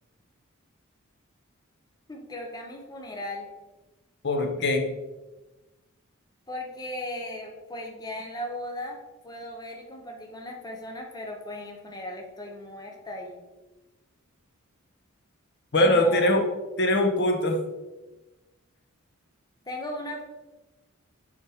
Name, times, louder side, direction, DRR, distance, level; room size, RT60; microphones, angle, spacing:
voice 1, 2.1-3.5 6.5-9.0 9.2-13.4 15.8-16.3 19.7-20.2, left 1 dB, 20° left, 1 dB, 0.7 m, -37 dB
voice 2, 4.2-4.8 15.7-16.4 16.8-17.6, left 1 dB, 55° left, 4 dB, 0.9 m, -22 dB
6.7 x 5.1 x 3.4 m, 1.1 s
head